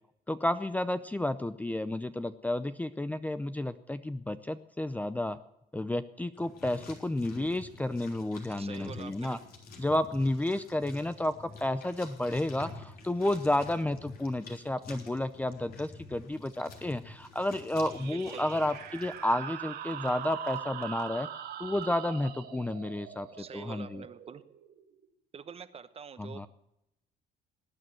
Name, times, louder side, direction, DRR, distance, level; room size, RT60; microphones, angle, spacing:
voice 1, 0.3-5.4 5.7-9.4 9.8-23.3 23.5-24.0 26.2-26.5, left 1 dB, 10° left, 12 dB, 0.6 m, -31 dB
sound 1, 6.3-19.3, left 3 dB, 60° left, 3.5 m, -49 dB
voice 2, 8.5-9.4 18.0-18.5 23.3-24.4 25.3-26.5, right 6 dB, 35° right, 13 dB, 1.1 m, -46 dB
sound 2, 17.8-25.1, right 10 dB, 70° right, 1.6 m, -42 dB
19.0 x 9.5 x 7.7 m, 0.85 s
cardioid pair, 110°, 17 cm